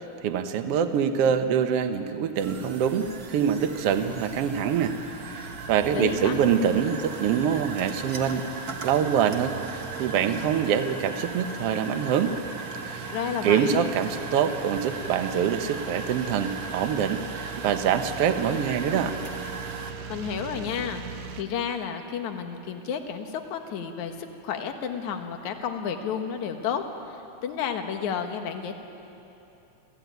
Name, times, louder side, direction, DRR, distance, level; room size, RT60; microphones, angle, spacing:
voice 1, 0.2-4.9 5.3-8.5 8.8-12.4 12.9-13.0 13.4-19.1, right 8 dB, 60° right, 8 dB, 1.7 m, -25 dB
sound 1, 2.4-19.9, right 3 dB, 45° right, 1.2 m, -38 dB
sound 2, 2.4-21.4, right 7 dB, 85° right, 2.6 m, -41 dB
voice 2, 5.9-6.4 13.1-13.9 20.1-21.0 21.4-24.1 24.4-26.8 27.4-28.7, left 7 dB, 70° left, 6 dB, 2.6 m, -31 dB
27.5 x 15.0 x 9.3 m, 2.9 s
omnidirectional pair, 3.7 m